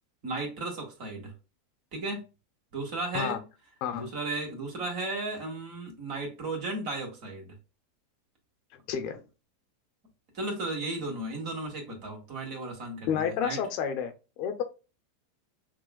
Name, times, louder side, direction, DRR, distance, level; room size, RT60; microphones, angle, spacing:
voice 1, 0.2-1.3 1.9-2.2 2.7-3.4 3.9-7.5 10.3-13.6, right 2 dB, 50° right, 1.9 m, -35 dB
voice 2, 8.9-9.2 13.1-14.6, left 8 dB, 50° left, 0.7 m, -30 dB
6.3 x 2.4 x 2.3 m
hypercardioid pair, 90°, 0 cm